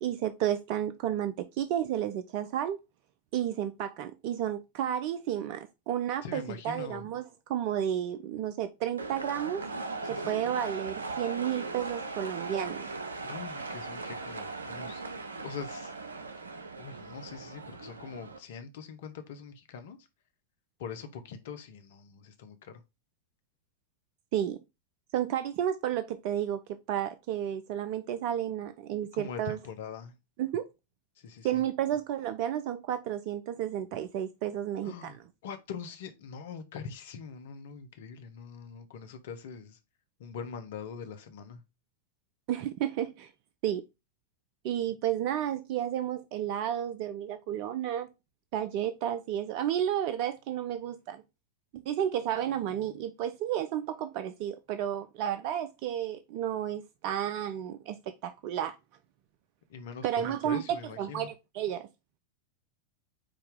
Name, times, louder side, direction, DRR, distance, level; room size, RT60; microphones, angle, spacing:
voice 1, 0.0-2.8 3.3-9.6 10.1-12.9 24.3-24.6 25.1-26.6 26.9-29.6 30.4-30.6 31.4-35.2 42.5-43.3 43.6-43.8 44.6-48.1 48.5-51.2 51.7-58.0 58.2-58.8 60.0-61.9, right 10 dB, 55° right, 0.6 m, -32 dB
voice 2, 6.2-7.0 10.0-10.3 13.2-15.0 15.4-15.9 16.8-20.1 20.8-22.8 29.1-30.1 31.2-31.6 34.8-39.8 40.2-41.6 59.7-61.3, left 6 dB, 65° left, 1.2 m, -43 dB
sound 1, 9.0-18.4, right 3 dB, 90° right, 0.7 m, -39 dB
8.8 x 2.9 x 3.7 m
hypercardioid pair, 100°, 0 cm